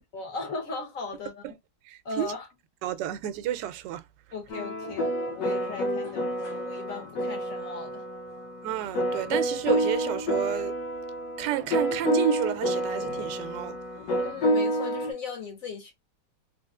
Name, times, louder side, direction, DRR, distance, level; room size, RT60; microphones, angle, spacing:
voice 1, 0.1-1.6 2.0-2.5 4.3-8.0 14.2-15.9, left 4 dB, 55° left, 1.5 m, -37 dB
voice 2, 1.9-2.3 2.8-4.0 8.6-10.7 11.4-13.8, right 12 dB, 90° right, 1.2 m, -31 dB
sound 1, 4.5-15.1, equal, 85° left, 1.6 m, -29 dB
3.3 x 2.9 x 2.2 m
omnidirectional pair, 1.8 m